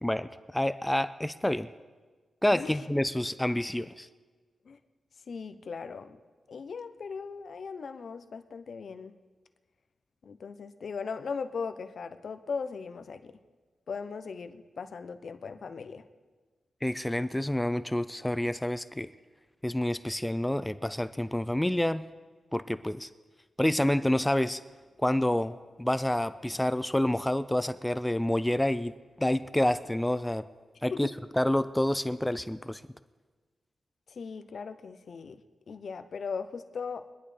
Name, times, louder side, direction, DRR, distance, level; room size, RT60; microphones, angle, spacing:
voice 1, 0.0-1.7 2.4-4.1 16.8-19.1 19.6-22.0 22.5-23.1 23.6-24.6 25.0-30.4 30.8-31.1 31.4-32.8, left 1 dB, 5° left, 12 dB, 0.3 m, -28 dB
voice 2, 5.3-6.2 6.5-9.1 10.2-13.3 13.9-16.0 30.9-31.1 34.1-35.4 35.7-37.1, left 5 dB, 50° left, 9 dB, 0.7 m, -38 dB
23.5 x 11.0 x 3.3 m, 1.4 s
wide cardioid pair, 160°, 0 cm